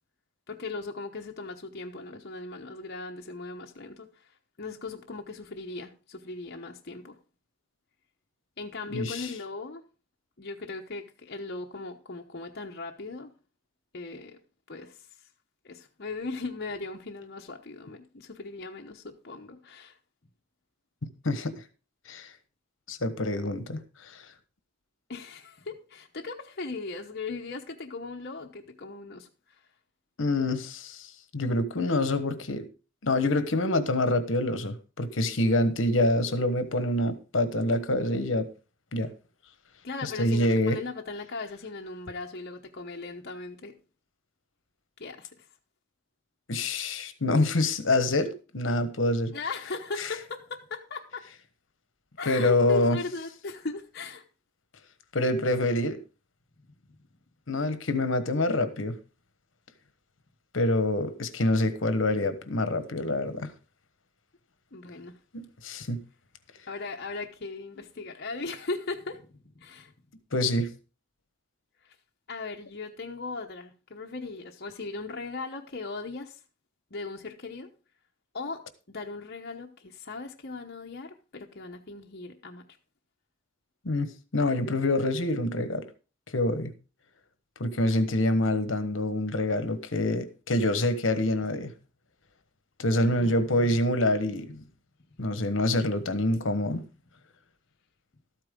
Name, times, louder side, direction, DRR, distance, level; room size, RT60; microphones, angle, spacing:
voice 1, 0.5-7.2 8.6-9.8 10.4-13.3 13.9-14.4 14.7-15.3 15.6-20.0 25.1-29.7 39.8-43.8 45.0-45.5 49.3-51.3 52.2-54.2 56.9-57.0 64.7-65.2 66.7-69.9 71.8-71.9 72.3-76.4 76.9-77.7 78.3-78.6 78.9-82.6 92.9-93.5 95.2-95.5, left 3 dB, 50° left, 1.0 m, -38 dB
voice 2, 8.9-9.3 21.0-21.5 22.1-22.3 22.9-24.2 30.2-32.7 33.0-38.5 38.9-39.1 40.0-40.8 46.5-49.3 52.2-53.0 55.1-56.0 57.5-59.0 60.5-63.5 65.3-66.0 70.3-70.7 83.8-85.9 86.3-86.7 87.6-91.7 92.8-94.6 95.2-96.8, left 1 dB, 70° left, 1.2 m, -26 dB
13.0 x 8.8 x 3.8 m
head